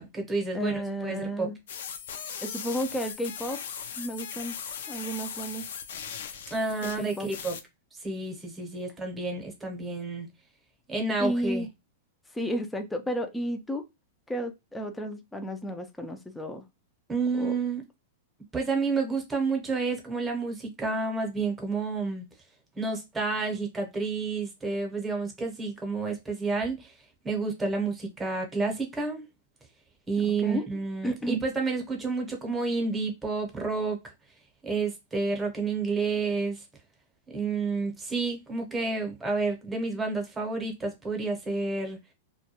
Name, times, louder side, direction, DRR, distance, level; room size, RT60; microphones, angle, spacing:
voice 1, 0.0-1.5 6.5-7.5 8.0-10.3 10.9-11.7 17.1-17.8 18.5-22.2 22.8-26.9 27.2-29.2 30.1-34.0 34.6-36.6 37.3-42.0, right 4 dB, 10° right, 0.8 m, -30 dB
voice 2, 0.5-1.6 2.1-3.6 4.0-4.6 4.9-5.7 6.8-7.3 11.2-11.7 12.3-13.8 14.3-16.6 17.3-17.5 30.2-30.7 31.0-31.4, equal, 5° left, 0.4 m, -32 dB
sound 1, 1.7-7.6, left 7 dB, 70° left, 0.4 m, -39 dB
2.2 x 2.2 x 2.8 m
hypercardioid pair, 140°, 0 cm